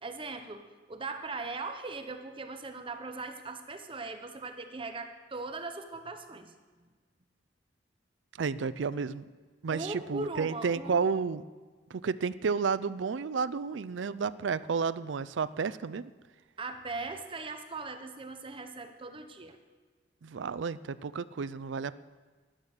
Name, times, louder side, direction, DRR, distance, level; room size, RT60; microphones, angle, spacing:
voice 1, 0.0-6.5 9.7-11.0 16.6-19.6, right 3 dB, 30° right, 7 dB, 0.9 m, -39 dB
voice 2, 8.4-9.2 9.6-11.4 11.9-16.1 20.2-21.9, right 5 dB, 80° right, 16 dB, 0.5 m, -31 dB
11.5 x 11.5 x 6.6 m, 1.4 s
head